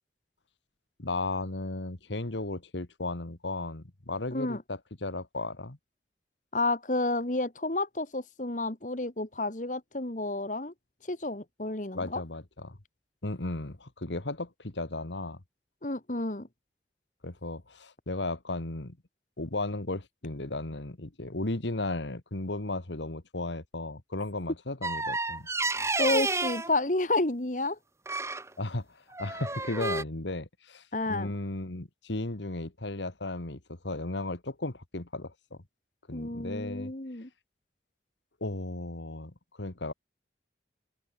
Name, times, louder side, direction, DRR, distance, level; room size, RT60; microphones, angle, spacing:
voice 1, 1.0-5.8 11.9-12.8 13.2-15.4 17.2-19.0 19.4-25.5 28.6-35.6 36.1-36.9 38.4-39.9, left 2 dB, 85° left, 1.9 m, -35 dB
voice 2, 4.3-4.6 6.5-10.7 11.1-12.2 15.8-16.5 26.0-27.8 30.9-31.3 36.1-37.3, left 2 dB, 45° left, 1.7 m, -30 dB
sound 1, 24.8-26.7 28.0-28.5 29.1-30.0, right 3 dB, 15° right, 2.8 m, -30 dB
open air
head